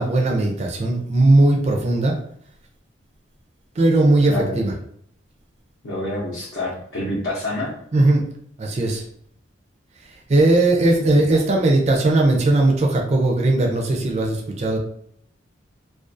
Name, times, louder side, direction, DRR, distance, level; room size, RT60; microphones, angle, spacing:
voice 1, 0.0-2.2 3.8-4.7 7.9-8.2 8.6-9.0 10.3-14.8, right 2 dB, 35° right, 0 dB, 0.4 m, -18 dB
voice 2, 4.2-4.6 5.8-7.7 11.1-11.4, left 1 dB, 80° left, -6 dB, 0.7 m, -27 dB
2.4 x 2.3 x 2.5 m, 0.64 s
head